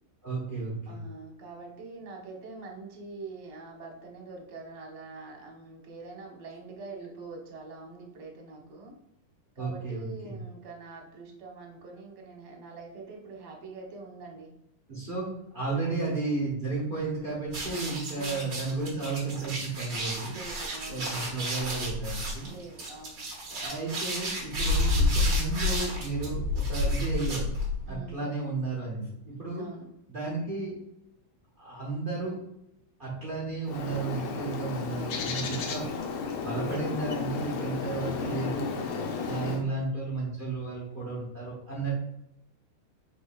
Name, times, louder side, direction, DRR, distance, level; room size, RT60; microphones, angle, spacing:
voice 1, 0.2-1.0 9.6-10.4 14.9-20.3 20.9-22.5 23.5-27.5 27.9-29.7 30.1-30.8 31.6-32.4 33.0-35.9 36.4-38.7 39.2-41.9, right 3 dB, 30° right, -6 dB, 1.0 m, -33 dB
voice 2, 0.9-9.0 9.6-14.5 18.1-18.6 20.3-21.4 22.5-23.3 24.5-24.9 26.2-26.5 27.9-28.2 29.5-29.9 35.5-35.8 39.4-39.8, right 3 dB, 80° right, 0 dB, 2.0 m, -45 dB
sound 1, 17.5-27.9, left 1 dB, 55° right, 1.9 m, -30 dB
Bird, 33.6-39.6, left 5 dB, 85° left, 1.6 m, -33 dB
4.4 x 4.2 x 2.4 m, 0.83 s
omnidirectional pair, 2.4 m